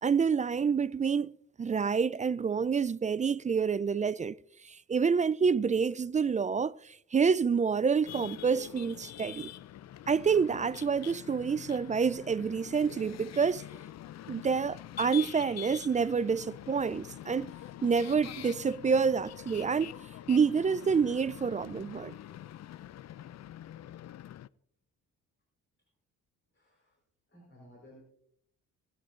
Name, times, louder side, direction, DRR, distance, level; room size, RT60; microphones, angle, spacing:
voice 1, 0.0-4.3 4.6-9.5 10.1-13.6 14.3-17.5 17.8-19.9 20.3-22.2, right 6 dB, 20° right, 0.3 m, -28 dB
sound 1, 8.1-24.5, left 12 dB, 45° left, 0.5 m, -45 dB
voice 2, 26.5-27.0 27.3-28.0, equal, 30° left, 4.4 m, -56 dB
19.0 x 9.3 x 2.5 m
hypercardioid pair, 45°, 38 cm